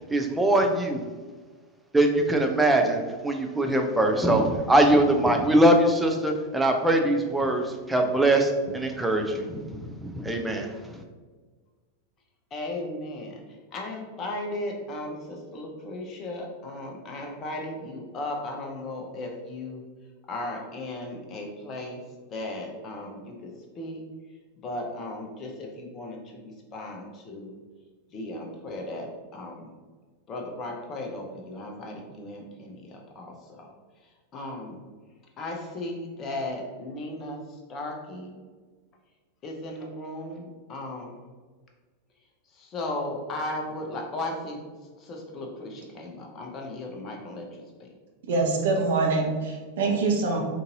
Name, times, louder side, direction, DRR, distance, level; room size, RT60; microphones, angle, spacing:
voice 1, 0.1-1.0 1.9-10.7, right 1 dB, 5° right, 3 dB, 0.4 m, -22 dB
voice 2, 12.5-19.8 20.3-22.0 22.3-23.5 23.8-24.0 24.6-27.5 28.1-29.7 30.3-33.7 34.0-34.9 35.4-38.4 39.4-41.3 42.5-44.6 45.0-47.9, left 1 dB, 30° left, 1 dB, 0.6 m, -36 dB
voice 3, 48.3-50.4, right 3 dB, 60° right, 0 dB, 0.7 m, -24 dB
3.8 x 2.6 x 2.6 m, 1.4 s
figure-of-eight pair, 90°, 0 cm